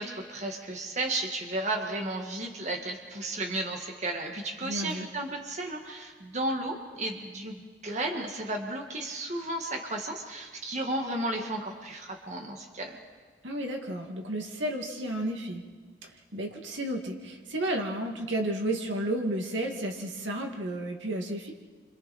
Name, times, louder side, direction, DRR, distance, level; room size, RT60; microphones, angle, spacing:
voice 1, 0.0-13.0, right 2 dB, 40° right, 1 dB, 1.9 m, -33 dB
voice 2, 4.6-5.1 13.4-15.6 16.3-21.5, right 1 dB, 85° right, 1 dB, 2.3 m, -32 dB
29.5 x 26.0 x 4.4 m, 1.5 s
head